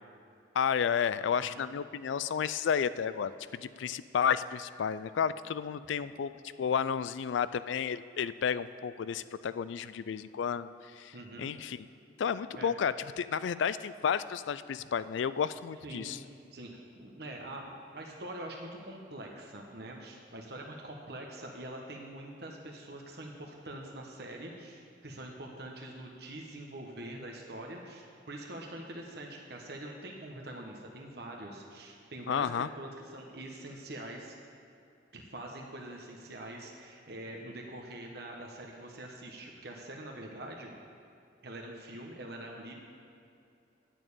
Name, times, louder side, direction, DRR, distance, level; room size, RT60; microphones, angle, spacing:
voice 1, 0.5-3.3 3.6-6.3 6.6-11.9 12.2-16.2 32.3-32.7, left 7 dB, 80° left, 16 dB, 0.3 m, -32 dB
voice 2, 1.3-1.6 11.1-11.5 12.5-12.7 15.8-16.2 16.5-16.7 17.0-34.4 35.1-40.7 41.4-42.7, right 1 dB, 55° right, 1 dB, 1.1 m, -44 dB
9.0 x 6.6 x 8.5 m, 2.5 s
head